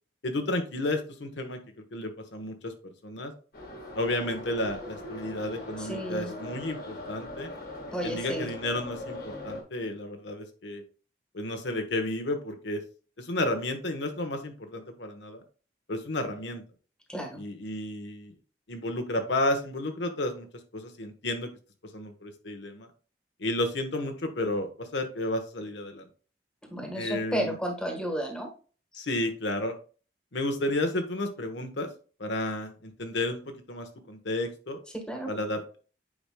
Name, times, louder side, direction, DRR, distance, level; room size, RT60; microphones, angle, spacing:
voice 1, 0.2-1.6 1.9-3.3 3.9-7.5 8.0-10.8 11.3-12.8 13.2-15.4 15.9-16.6 17.4-18.3 18.7-20.5 20.7-21.5 21.9-22.9 23.4-26.0 26.9-27.6 28.9-29.7 30.3-31.9 32.2-34.8 35.3-35.8, left 1 dB, 85° left, 5 dB, 1.1 m, -32 dB
Subway metro underground, 3.5-9.6, left 1 dB, 60° left, 1.5 m, -40 dB
voice 2, 5.8-6.3 7.9-8.5 17.1-17.4 26.7-28.5 34.9-35.3, equal, 5° left, 3 dB, 1.3 m, -32 dB
8.6 x 4.9 x 2.2 m, 0.37 s
head